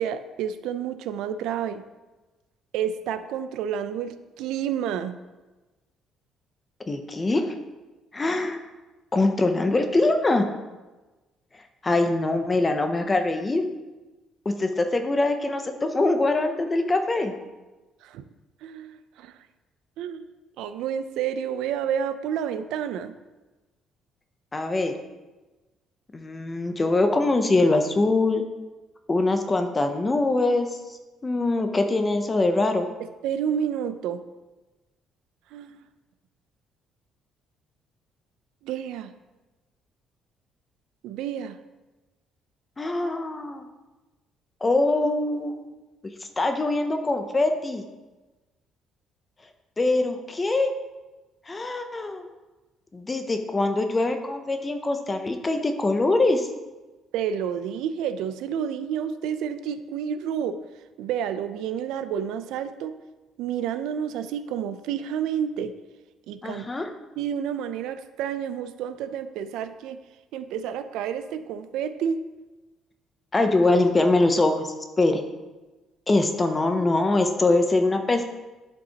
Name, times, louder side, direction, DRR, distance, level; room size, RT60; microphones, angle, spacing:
voice 1, 0.0-1.8 2.7-5.2 18.0-18.2 18.6-19.5 20.0-20.3 20.6-23.1 33.2-34.2 35.5-35.8 38.6-39.1 41.0-41.6 57.1-60.6 61.0-62.9 63.4-65.7 66.3-66.7 67.2-70.0 70.3-72.2, right 8 dB, 90° right, 11 dB, 0.4 m, -30 dB
voice 2, 6.9-7.5 8.1-8.6 9.1-10.5 11.8-13.6 14.5-17.3 24.5-24.9 26.1-28.4 29.1-30.7 31.2-32.9 42.8-43.6 44.6-45.5 46.4-47.8 49.8-50.7 51.5-52.2 52.9-56.5 66.4-66.9 73.3-75.2 76.1-78.2, left 2 dB, 15° left, 6 dB, 0.5 m, -23 dB
11.0 x 5.3 x 2.9 m, 1.2 s
cardioid pair, 175°, 0 cm